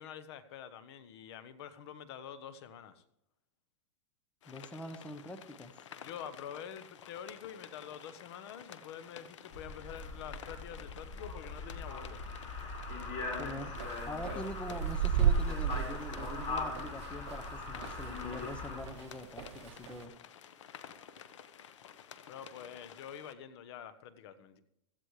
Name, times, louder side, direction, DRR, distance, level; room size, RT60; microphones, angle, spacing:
voice 1, 0.0-3.0 6.0-12.2 14.3-14.5 22.3-24.6, left 8 dB, 60° left, 14 dB, 1.2 m, -47 dB
sound 1, 4.4-23.3, left 8 dB, 90° left, 1.2 m, -52 dB
voice 2, 4.5-5.7 13.3-13.7 14.1-20.1, left 1 dB, 10° left, 9 dB, 1.0 m, -44 dB
sound 2, 9.5-18.8, left 3 dB, 40° left, 5.1 m, -41 dB
sound 3, 13.8-18.6 18.9-20.0, right 7 dB, 75° right, 0.8 m, -33 dB
16.5 x 14.5 x 3.3 m, 0.81 s
supercardioid pair, 145°, 15 cm